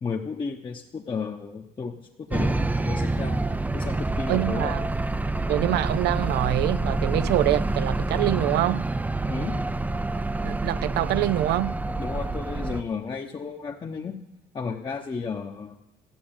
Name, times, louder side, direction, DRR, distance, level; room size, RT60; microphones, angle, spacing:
voice 1, 0.0-3.4 3.7-4.8 9.3-9.6 12.0-14.2 14.5-15.8, left 5 dB, 30° left, 1.0 m, -33 dB
sound 1, 2.3-12.8, right 2 dB, 10° right, 0.5 m, -27 dB
voice 2, 4.3-4.9 5.5-8.8 10.4-11.7, right 15 dB, 75° right, 0.6 m, -25 dB
13.5 x 8.5 x 8.9 m
cardioid pair, 110°, 17 cm